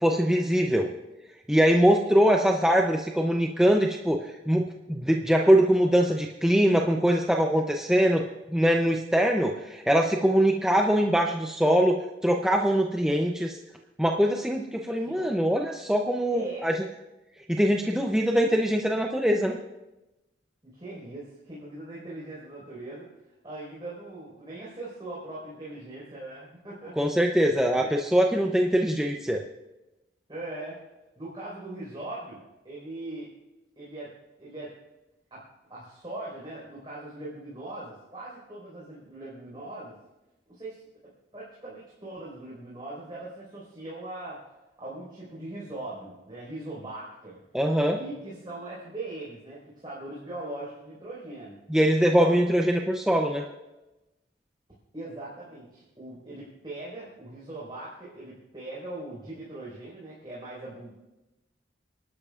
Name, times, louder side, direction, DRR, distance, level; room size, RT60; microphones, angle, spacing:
voice 1, 0.0-0.9 1.5-13.6 14.0-16.7 17.5-19.6 27.0-29.4 47.5-48.0 51.7-53.5, equal, 5° right, 1 dB, 0.6 m, -23 dB
voice 2, 14.9-15.3 16.3-16.7 20.6-23.1 23.4-26.9 27.2-27.9 30.3-30.8 31.2-32.4 32.6-33.3 33.8-34.1 34.4-34.8 35.3-35.4 35.7-40.0 40.5-40.8 41.3-44.5 44.8-47.4 47.9-51.6 52.1-52.4 54.9-60.9, right 2 dB, 25° right, -7 dB, 4.7 m, -40 dB
29.5 x 12.0 x 2.5 m, 1.0 s
head